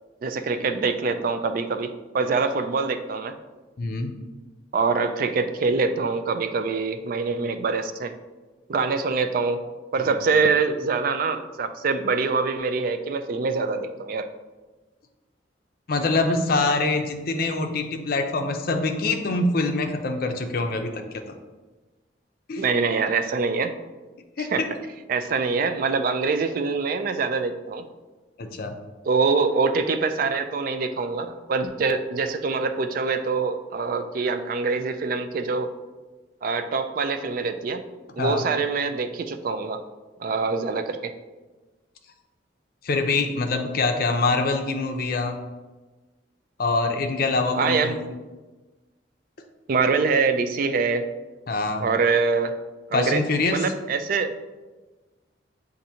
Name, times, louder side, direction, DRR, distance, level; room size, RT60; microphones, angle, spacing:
voice 1, 0.2-1.9 2.1-3.3 4.7-8.1 8.7-9.6 9.9-14.3 22.6-23.7 24.4-24.6 25.1-27.8 29.1-35.7 36.4-37.8 38.2-39.8 40.2-41.1 47.6-48.0 49.7-51.1 51.8-52.5 52.9-53.2 53.5-54.4, right 4 dB, 50° right, 9 dB, 0.3 m, -24 dB
voice 2, 3.8-4.1 10.0-10.1 15.9-21.2 22.5-22.7 24.4-24.7 28.4-28.7 38.2-38.5 42.8-45.4 46.6-47.9 51.5-51.9 52.9-53.7, left 3 dB, 55° left, 5 dB, 0.5 m, -24 dB
7.5 x 2.6 x 2.8 m, 1.2 s
head